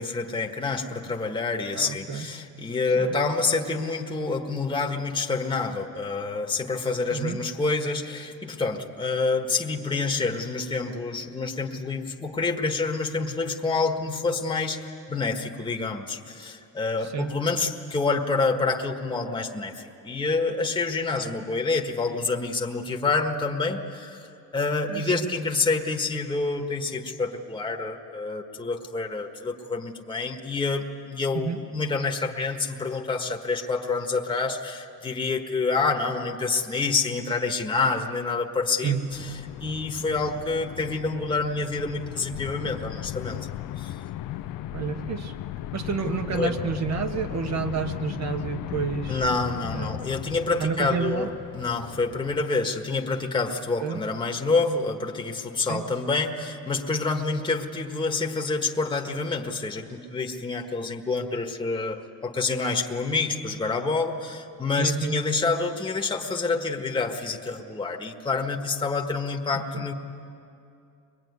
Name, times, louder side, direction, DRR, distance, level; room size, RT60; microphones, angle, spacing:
voice 1, 0.0-38.9 39.6-43.4 43.8-44.0 46.3-46.5 49.1-69.9, left 3 dB, 15° left, 2 dB, 1.5 m, -27 dB
voice 2, 1.7-2.3 3.0-3.1 7.1-7.4 17.1-17.3 21.2-21.3 24.9-25.3 31.3-31.6 38.8-39.0 44.7-45.3 45.7-49.2 49.6-50.0 50.6-51.3 53.8-54.0 55.7-55.8 64.8-65.2 69.5-69.9, right 6 dB, 50° right, 6 dB, 1.6 m, -30 dB
sound 1, 39.1-52.5, left 13 dB, 75° left, 0.7 m, -36 dB
24.0 x 22.0 x 9.7 m, 2.6 s
cardioid pair, 125°, 33 cm